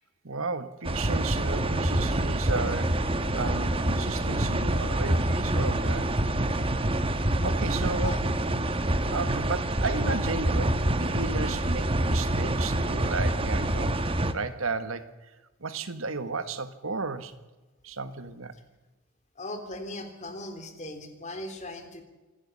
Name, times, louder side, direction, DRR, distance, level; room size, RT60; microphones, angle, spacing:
voice 1, 0.2-6.1 7.4-8.2 9.1-15.1 15.6-17.4 17.8-18.5, right 3 dB, 75° right, 11 dB, 1.5 m, -34 dB
sound 1, 0.8-14.3, right 1 dB, 25° right, 1.2 m, -26 dB
voice 2, 19.4-22.0, left 2 dB, 35° left, 7 dB, 3.1 m, -38 dB
27.0 x 11.5 x 9.9 m, 1.2 s
head